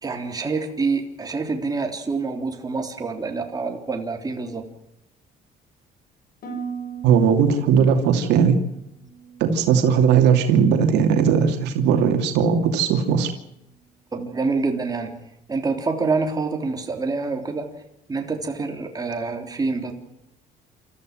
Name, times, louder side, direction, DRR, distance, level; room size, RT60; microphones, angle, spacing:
voice 1, 0.0-4.7 14.1-15.1 15.5-17.7 18.1-19.9, right 4 dB, 20° right, 3 dB, 3.5 m, -26 dB
Harp, 6.4-10.5 10.8-11.4 11.9-12.2, right 6 dB, 60° left, 6.2 m, -39 dB
voice 2, 7.0-8.6 9.4-13.3, right 7 dB, 85° right, 5 dB, 2.7 m, -18 dB
28.5 x 14.5 x 7.7 m, 0.84 s
cardioid pair, 110°, 17 cm